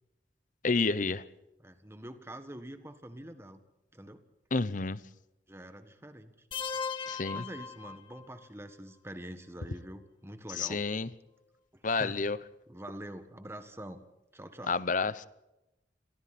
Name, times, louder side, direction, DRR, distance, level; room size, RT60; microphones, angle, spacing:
voice 1, 0.6-1.2 4.5-5.0 7.1-7.4 10.6-11.1 11.8-12.4 14.7-15.3, left 4 dB, 45° left, 0.8 m, -29 dB
voice 2, 1.6-3.6 3.9-4.2 5.5-6.5 6.7-7.0 7.3-10.8 11.7-12.3 12.7-14.0 14.3-14.8, right 1 dB, 15° right, 1.5 m, -45 dB
sound 1, 6.5-8.5, left 6 dB, 25° left, 1.4 m, -38 dB
29.5 x 23.0 x 4.3 m
head